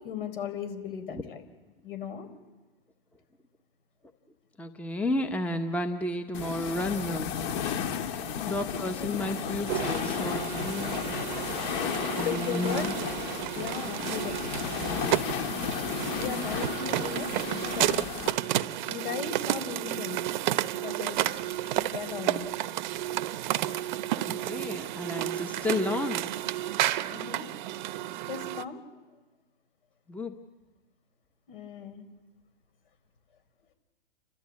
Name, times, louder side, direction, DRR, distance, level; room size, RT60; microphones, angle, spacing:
voice 1, 0.0-1.4 1.8-2.3 8.4-8.8 12.2-12.8 13.5-14.3 16.1-18.0 18.9-20.2 20.8-21.4 21.7-22.5 27.1-27.5 28.3-28.8 31.5-32.0, left 8 dB, 65° left, 8 dB, 4.4 m, -36 dB
voice 2, 4.6-7.3 8.5-11.0 12.2-12.9 24.2-26.3 30.1-30.3, left 1 dB, 5° left, 7 dB, 1.1 m, -32 dB
sound 1, 6.3-18.3, left 8 dB, 45° left, 2.0 m, -33 dB
sound 2, 9.1-28.6, right 14 dB, 50° right, 0.9 m, -32 dB
30.0 x 13.0 x 8.5 m, 1.2 s
hypercardioid pair, 125°, 30 cm